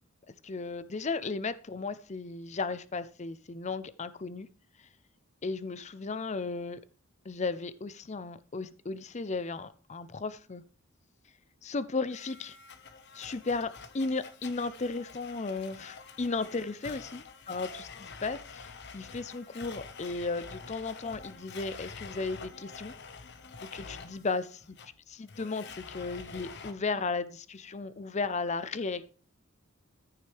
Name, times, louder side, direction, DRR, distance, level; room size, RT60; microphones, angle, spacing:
voice 1, 0.4-4.5 5.4-6.8 7.2-10.6 11.6-12.6 13.1-22.9 23.6-24.6 25.2-29.0, left 3 dB, 35° left, 0.6 m, -35 dB
Domestic sounds home sounds, 12.1-26.7, left 5 dB, 55° left, 1.1 m, -47 dB
14.5 x 6.5 x 3.3 m
head